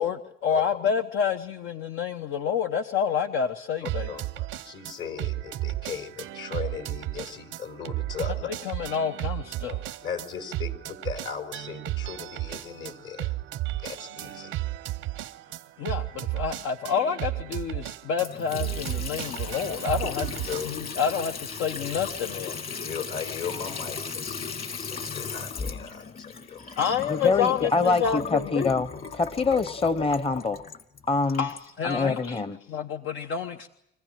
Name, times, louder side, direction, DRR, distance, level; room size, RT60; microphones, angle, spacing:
voice 1, 0.0-4.1 8.4-9.8 15.8-22.8 26.8-28.7 31.4-32.4 32.7-33.7, left 7 dB, 90° left, 5 dB, 1.0 m, -28 dB
voice 2, 3.8-8.5 10.0-13.3 13.8-14.6 20.5-20.7 21.0-21.1 22.8-24.5 24.7-26.8, left 7 dB, 70° left, 6 dB, 4.2 m, -37 dB
sound 1, 3.8-20.6, right 16 dB, 90° right, 0.8 m, -34 dB
Water tap faucet / Sink (filling or washing) / Trickle dribble, 18.2-32.3, left 5 dB, 50° left, 2.5 m, -37 dB
voice 3, 27.1-28.9 29.1-30.6 31.1-31.5 31.8-32.6, left 4 dB, 30° left, 13 dB, 0.8 m, -25 dB
25.5 x 15.5 x 9.0 m, 0.79 s
cardioid pair, 90°, 20 cm